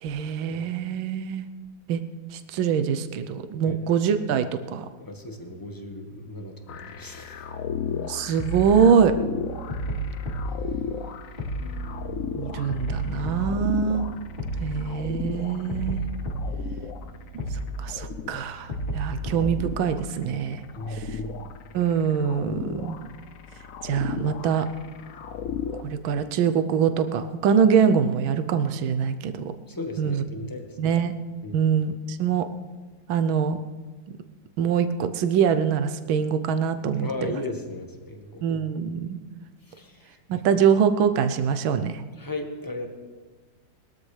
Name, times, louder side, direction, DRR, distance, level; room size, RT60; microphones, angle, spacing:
voice 1, 0.0-1.5 1.9-2.0 2.3-4.9 7.9-9.2 12.3-14.1 14.6-16.0 17.3-20.6 20.9-21.2 21.7-23.0 23.8-24.7 25.8-29.5 30.0-30.2 30.8-31.1 31.5-32.5 33.1-33.6 34.1-34.2 34.6-37.1 38.4-39.2 40.3-42.0, right 7 dB, 80° right, 9 dB, 1.6 m, -24 dB
voice 2, 5.0-7.5 11.6-11.9 20.7-21.4 29.7-30.8 31.4-31.6 37.0-38.5 39.7-40.2 42.2-42.9, left 1 dB, 10° left, 3 dB, 1.2 m, -36 dB
sound 1, 6.7-25.8, left 7 dB, 65° left, 0.8 m, -36 dB
sound 2, 8.4-8.7 9.7-10.5 11.4-11.7 12.7-13.6 14.4-14.7 15.7-16.6 17.4-17.7 18.7-19.6, right 1 dB, 30° left, 3.4 m, -30 dB
sound 3, 11.6-24.7, right 3 dB, 80° left, 5.3 m, -47 dB
21.0 x 13.5 x 3.3 m, 1.3 s
omnidirectional pair, 2.2 m